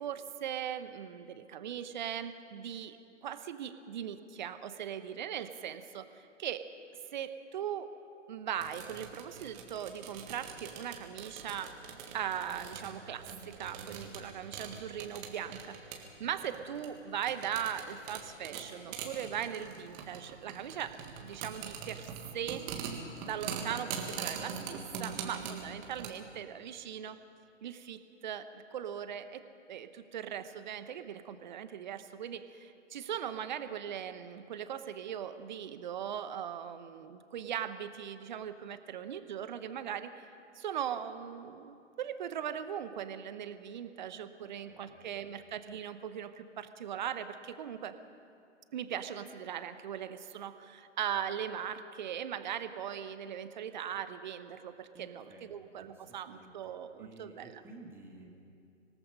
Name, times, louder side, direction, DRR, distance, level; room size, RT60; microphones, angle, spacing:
voice 1, 0.0-3.0 3.2-6.7 7.1-7.9 8.3-11.7 12.1-22.8 23.2-27.2 27.6-29.4 29.7-40.3 40.5-48.0 48.7-57.6, right 9 dB, 40° right, 11 dB, 1.1 m, -39 dB
sound 1, 8.6-26.1, right 6 dB, 20° right, 1.9 m, -43 dB
voice 2, 44.4-45.2 54.9-55.5 55.8-56.5 57.0-58.3, right 2 dB, 5° right, -1 dB, 2.0 m, -54 dB
26.0 x 18.5 x 5.5 m, 2.5 s
figure-of-eight pair, 135°, 36 cm